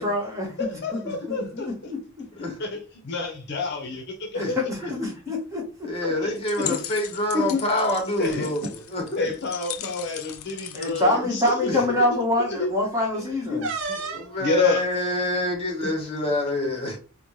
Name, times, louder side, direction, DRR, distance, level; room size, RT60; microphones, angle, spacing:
voice 1, 0.0-2.0 4.3-5.9 10.7-13.7, left 1 dB, 15° right, 1.1 m, -26 dB
voice 2, 0.6-1.9 2.6-4.6 6.2-6.8 7.3-7.6 8.2-8.5 9.2-11.8 12.5-12.7 13.1-14.8 15.8-15.9, left 3 dB, 55° left, 0.7 m, -29 dB
voice 3, 5.8-8.6 8.9-9.2 11.6-11.8 14.1-17.0, left 1 dB, 30° left, 1.1 m, -27 dB
sound 1, 5.9-6.2 7.4-8.3 8.6-8.8 9.1-9.4 10.3-10.4 11.1-11.3 13.6-14.3, right 4 dB, 65° right, 0.6 m, -33 dB
sound 2, 6.4-12.0, left 11 dB, 90° left, 0.4 m, -38 dB
4.1 x 2.1 x 3.1 m
head